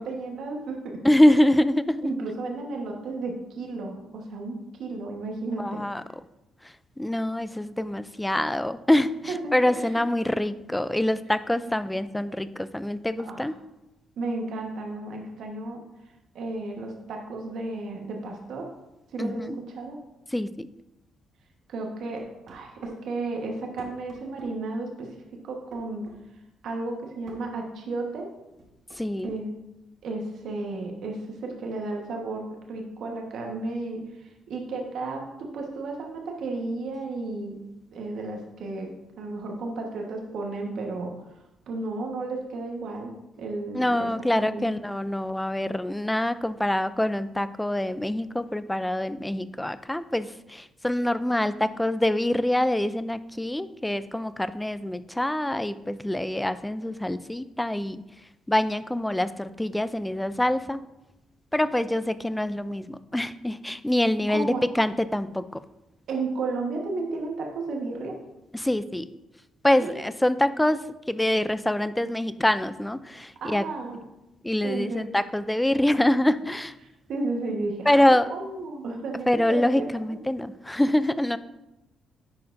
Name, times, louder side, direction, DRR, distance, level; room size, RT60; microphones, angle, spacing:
voice 1, 0.0-1.0 2.0-5.8 9.3-10.0 13.3-13.5 14.2-15.8 16.3-18.7 19.1-20.0 21.7-25.1 25.4-26.1 26.6-28.3 29.2-29.5 30.0-34.0 34.5-37.6 37.9-41.1 41.7-44.1 44.3-44.6 64.3-64.6 66.1-68.2 69.8-70.0 73.4-74.0 74.6-75.0 77.1-80.2, right 3 dB, 70° right, 1 dB, 1.2 m, -33 dB
voice 2, 1.0-2.1 5.6-6.0 7.0-13.6 19.2-19.6 20.3-20.7 29.0-29.4 43.7-58.0 58.5-60.8 61.5-65.6 68.5-69.1 69.6-73.6 74.4-76.7 77.9-78.3 79.3-81.4, left 1 dB, 10° left, 14 dB, 0.3 m, -25 dB
sound 1, 22.2-23.0 23.8-24.5 25.7-26.2 27.3-27.5 28.6-29.4, right 2 dB, 55° right, 1.3 m, -47 dB
10.5 x 4.5 x 2.6 m, 0.94 s
cardioid pair, 90°, 0 cm